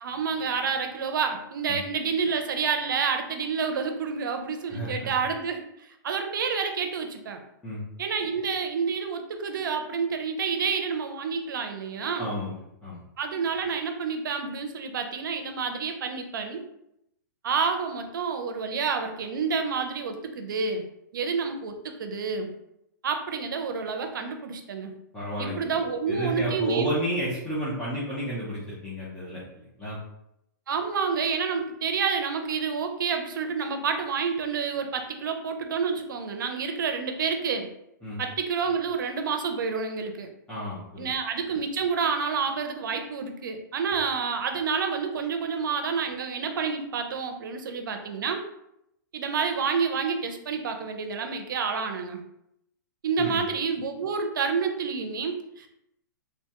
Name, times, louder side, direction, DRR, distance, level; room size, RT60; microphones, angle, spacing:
voice 1, 0.0-5.7 6.0-7.4 8.0-12.3 13.2-16.6 17.4-20.8 21.1-22.5 23.0-24.9 25.4-26.9 30.7-37.7 38.2-40.3 41.0-48.5 49.1-52.2 53.0-55.7, right 5 dB, 70° right, 6 dB, 0.5 m, -29 dB
voice 2, 4.7-5.1 7.6-7.8 12.2-13.0 25.1-30.0 38.0-38.2 40.5-41.1 53.2-53.4, equal, 5° left, -10 dB, 0.5 m, -32 dB
3.0 x 2.2 x 2.8 m, 0.80 s
hypercardioid pair, 155°, 11 cm